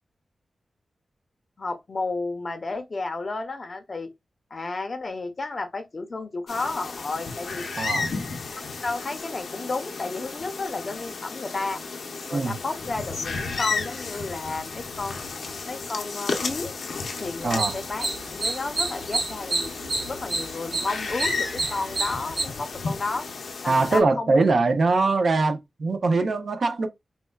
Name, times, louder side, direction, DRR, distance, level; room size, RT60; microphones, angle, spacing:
voice 1, 1.6-4.1 4.5-7.7 8.8-11.8 12.3-15.2 15.6-16.7 17.2-19.7 20.1-24.6, left 3 dB, 40° left, 0.6 m, -32 dB
sound 1, 6.5-24.0, left 4 dB, 75° left, 0.6 m, -33 dB
voice 2, 17.4-17.7 23.7-26.9, right 3 dB, 55° right, 0.5 m, -22 dB
sound 2, 17.4-22.4, right 2 dB, 75° right, 1.0 m, -29 dB
4.2 x 2.2 x 2.2 m
wide cardioid pair, 155°, 0 cm